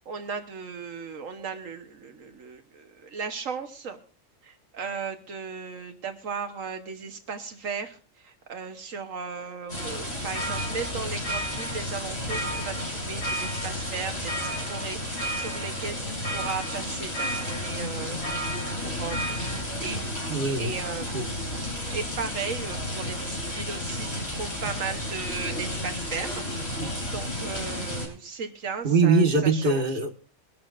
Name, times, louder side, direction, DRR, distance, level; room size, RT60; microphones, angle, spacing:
voice 1, 0.1-4.0 4.4-18.5 18.8-20.0 20.6-26.7 27.1-29.8, right 5 dB, 80° right, 1.5 m, -36 dB
sound 1, 9.7-28.1, left 1 dB, 50° left, 5.7 m, -33 dB
sound 2, 9.8-19.6, right 1 dB, 75° left, 5.0 m, -36 dB
voice 2, 20.3-20.8 21.1-21.3 26.8-26.9 28.8-30.1, right 4 dB, 45° right, 1.6 m, -22 dB
23.5 x 12.0 x 2.5 m
omnidirectional pair, 1.3 m